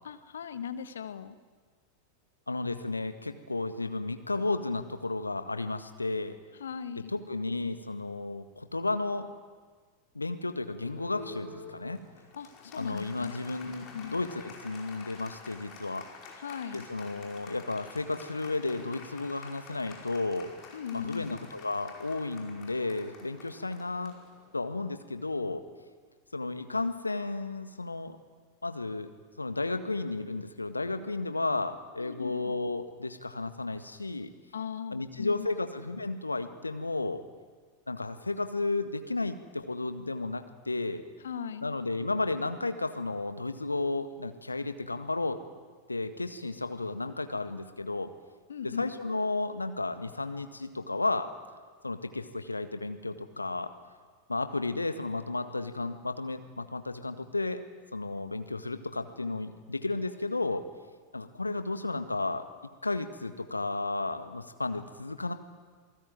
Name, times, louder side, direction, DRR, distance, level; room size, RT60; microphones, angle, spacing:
voice 1, 0.0-1.4 6.6-7.1 12.3-13.4 13.7-14.2 16.3-16.9 20.7-21.4 32.0-32.5 34.5-35.5 41.2-41.7 48.5-48.9, left 7 dB, 65° left, 11 dB, 1.4 m, -39 dB
voice 2, 2.5-6.3 7.1-9.3 10.1-12.0 12.8-16.1 16.7-20.5 20.9-24.2 24.5-25.6 26.3-28.2 28.6-29.1 29.4-34.3 34.9-37.2 37.9-41.0 41.6-45.4 45.9-48.1 48.6-51.3 51.8-53.7 54.3-57.6 57.9-60.6 61.1-62.4 62.8-65.3, left 3 dB, 80° left, 9 dB, 1.7 m, -33 dB
Applause, 10.7-24.8, left 4 dB, 35° left, 5.2 m, -49 dB
28.0 x 19.5 x 9.2 m, 1.5 s
figure-of-eight pair, 90°, 0 cm